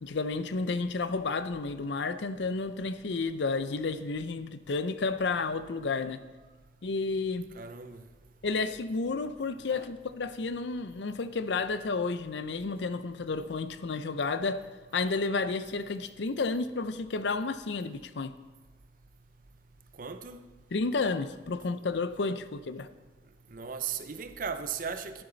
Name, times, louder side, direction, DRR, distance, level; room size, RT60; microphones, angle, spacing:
voice 1, 0.0-6.2 6.8-7.5 8.4-14.6 14.9-18.3 20.7-22.9, left 3 dB, 75° left, 0.6 m, -31 dB
voice 2, 7.5-8.0 9.7-9.9 20.0-20.4 23.5-25.2, right 6 dB, 50° right, 0.7 m, -37 dB
12.5 x 11.0 x 4.0 m
head